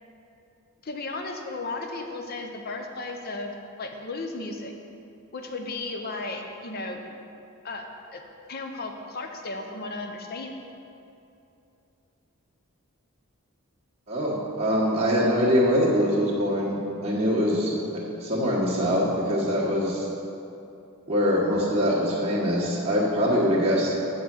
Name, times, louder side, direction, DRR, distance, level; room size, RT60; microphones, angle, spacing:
voice 1, 0.8-4.7 5.3-7.0 7.6-7.9 8.1-8.2 8.5-10.5, left 3 dB, 45° left, 4 dB, 0.6 m, -34 dB
voice 2, 14.1-17.7 18.2-20.1 21.1-23.9, equal, 30° right, -6 dB, 1.4 m, -23 dB
9.3 x 3.9 x 6.1 m, 2.7 s
head